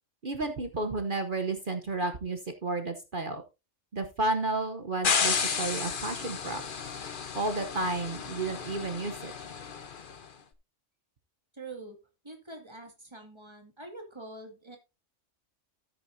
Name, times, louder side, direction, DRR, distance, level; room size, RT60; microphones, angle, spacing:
voice 1, 0.2-3.4 3.9-6.6 7.3-9.3, right 2 dB, 45° right, 6 dB, 1.1 m, -32 dB
sound 1, 5.0-10.2, left 6 dB, 45° left, 1.1 m, -32 dB
voice 2, 11.5-12.0 12.2-14.8, right 2 dB, 20° right, 3 dB, 2.4 m, -45 dB
13.5 x 8.4 x 2.7 m, 0.26 s
omnidirectional pair, 1.3 m